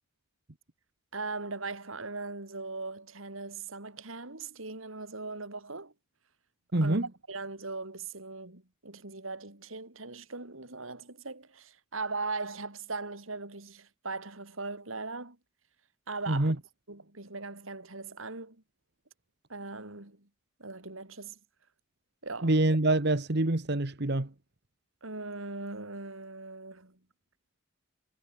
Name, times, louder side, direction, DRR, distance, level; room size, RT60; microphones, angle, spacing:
voice 1, 1.1-5.9 6.8-7.0 7.3-15.4 16.1-16.5 16.9-18.6 19.5-20.3 20.6-21.4 22.2-22.5 25.0-27.0, right 3 dB, 85° right, 4.1 m, -39 dB
voice 2, 6.7-7.0 16.3-16.6 22.4-24.3, right 2 dB, 55° right, 1.5 m, -26 dB
head